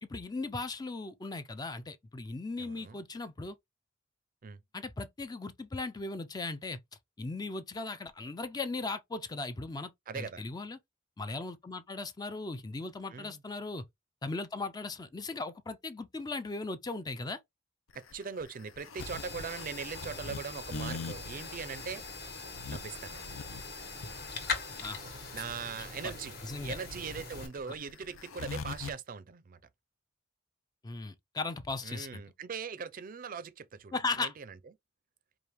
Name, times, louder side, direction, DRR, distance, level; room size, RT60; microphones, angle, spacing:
voice 1, 0.0-3.6 4.7-6.8 7.2-10.8 11.2-13.8 14.2-17.4 24.8-25.0 26.4-26.8 27.7-27.8 30.8-32.2 33.9-34.3, left 3 dB, 20° left, 0.4 m, -37 dB
voice 2, 2.6-3.0 4.4-4.6 10.1-10.4 13.1-13.4 17.9-22.0 22.7-23.3 25.3-26.4 26.6-29.6 31.8-34.6, right 6 dB, 45° right, 0.4 m, -41 dB
sound 1, 17.9-28.9, left 4 dB, 90° left, 0.6 m, -43 dB
sound 2, 19.0-27.5, left 4 dB, 55° left, 1.4 m, -41 dB
4.9 x 2.5 x 3.0 m
head